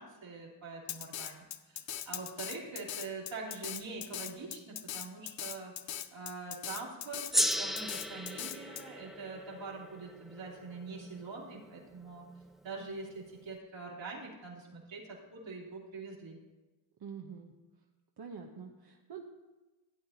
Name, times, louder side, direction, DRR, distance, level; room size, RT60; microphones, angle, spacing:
voice 1, 0.0-5.7 6.1-12.3 12.6-16.4, right 3 dB, 70° right, -4 dB, 3.0 m, -44 dB
Drum kit, 0.9-8.8, left 10 dB, 70° left, 0.7 m, -40 dB
Gong, 7.3-12.1, equal, ahead, 0.3 m, -36 dB
voice 2, 17.0-17.5 18.2-19.2, right 6 dB, 55° right, 0 dB, 1.0 m, -45 dB
15.5 x 8.9 x 2.8 m, 1.1 s
cardioid pair, 70°, 47 cm